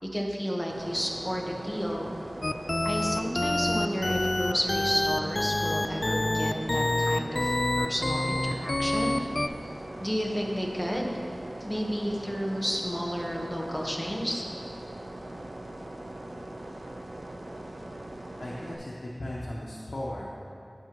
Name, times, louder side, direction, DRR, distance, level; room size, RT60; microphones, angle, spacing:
voice 1, 0.0-2.2 2.8-9.4 10.0-11.1 11.6-14.4, equal, 5° left, -1 dB, 1.2 m, -31 dB
sound 1, 0.7-18.7, right 1 dB, 80° right, 0.7 m, -41 dB
sound 2, 2.4-9.5, left 1 dB, 45° left, 0.3 m, -27 dB
voice 2, 18.4-20.4, left 1 dB, 90° left, -6 dB, 0.9 m, -37 dB
15.0 x 5.5 x 3.1 m, 2.5 s
wide cardioid pair, 55°, 0 cm